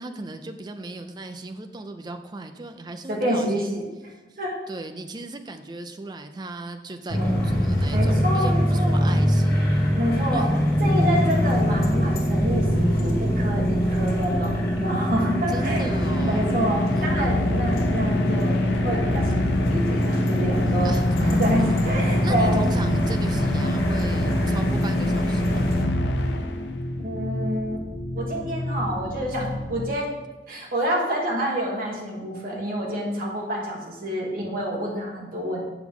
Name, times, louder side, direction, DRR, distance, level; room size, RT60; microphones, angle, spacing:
voice 1, 0.0-3.8 4.7-9.9 10.3-10.5 15.5-16.6 20.8-21.1 22.2-25.8, right 2 dB, 25° right, 7 dB, 0.4 m, -36 dB
voice 2, 3.1-3.8 4.4-4.6 7.1-7.4 7.9-9.3 10.0-10.5 10.8-15.9 16.2-20.9 21.2-22.7 27.0-27.8 28.1-30.1 30.5-35.6, equal, 50° right, -2 dB, 1.5 m, -28 dB
sound 1, 7.1-25.8, equal, 55° left, 1.8 m, -23 dB
sound 2, 10.8-29.9, left 1 dB, 35° left, 0.5 m, -32 dB
sound 3, 15.3-26.9, left 1 dB, 80° left, 0.6 m, -29 dB
7.9 x 5.9 x 3.7 m, 1.1 s
head